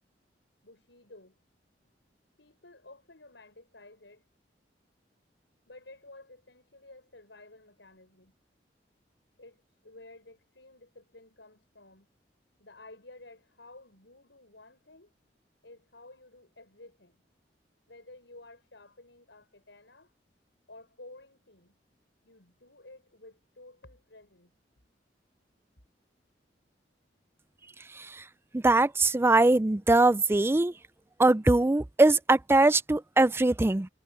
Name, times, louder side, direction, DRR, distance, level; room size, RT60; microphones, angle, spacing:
voice 1, 0.6-1.4 2.4-4.2 5.7-8.3 9.4-12.1 12.6-15.1 15.6-17.2 17.9-20.1 20.7-21.8 22.2-24.5, left 2 dB, 85° left, 6.7 m, -53 dB
voice 2, 28.6-30.7 31.2-33.9, right 2 dB, 15° right, 0.4 m, -22 dB
head